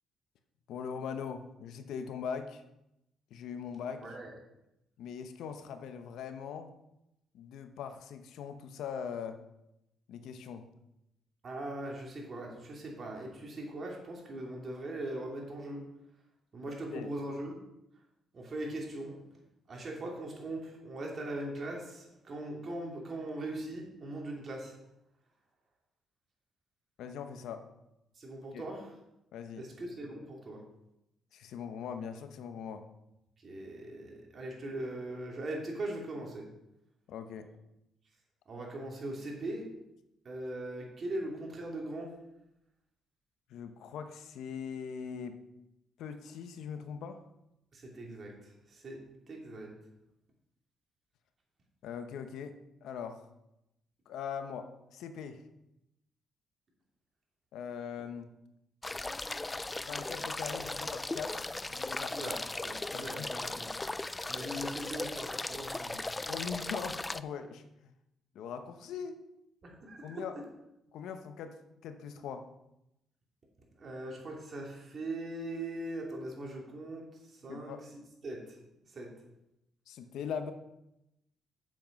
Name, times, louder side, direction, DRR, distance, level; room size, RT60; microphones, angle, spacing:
voice 1, 0.7-2.6 3.3-4.0 5.0-6.7 7.3-9.4 10.1-10.7 16.7-17.1 27.0-27.6 28.5-28.6 29.3-29.7 31.3-32.8 37.1-37.5 43.5-45.4 46.0-47.2 51.8-53.2 54.1-55.4 57.5-58.3 59.8-62.4 62.9-63.3 65.5-65.6 66.2-67.9 68.3-69.2 70.0-70.4 70.9-71.6 71.8-72.5 77.5-77.8 79.9-80.5, left 7 dB, 80° left, 8 dB, 0.9 m, -41 dB
voice 2, 4.0-4.3 11.4-15.8 16.5-17.6 18.3-19.2 19.7-24.8 28.2-28.9 29.6-30.6 33.4-36.5 38.5-39.7 40.2-42.1 47.7-49.0 49.3-49.7 62.1-63.7 64.3-66.0 69.6-70.2 73.8-77.0 77.3-77.7 78.2-78.4 78.9-79.1, right 1 dB, 45° right, 0 dB, 2.8 m, -40 dB
sound 1, 58.8-67.2, left 2 dB, 15° left, 0.4 m, -37 dB
7.7 x 7.5 x 5.3 m, 0.86 s
cardioid pair, 90°, 0 cm